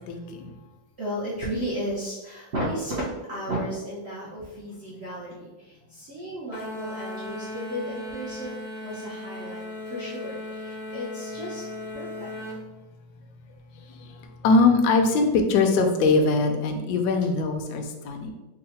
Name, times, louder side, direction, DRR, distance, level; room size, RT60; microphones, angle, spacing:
voice 1, 0.1-0.5 14.0-14.1 14.4-18.3, left 3 dB, 70° left, 5 dB, 1.0 m, -22 dB
voice 2, 1.0-8.6 8.8-11.6 11.9-12.3, equal, 70° right, -6 dB, 0.6 m, -34 dB
sound 1, 6.5-12.6, left 2 dB, 85° left, 1.5 m, -37 dB
3.7 x 2.1 x 4.1 m, 1.1 s
omnidirectional pair, 2.0 m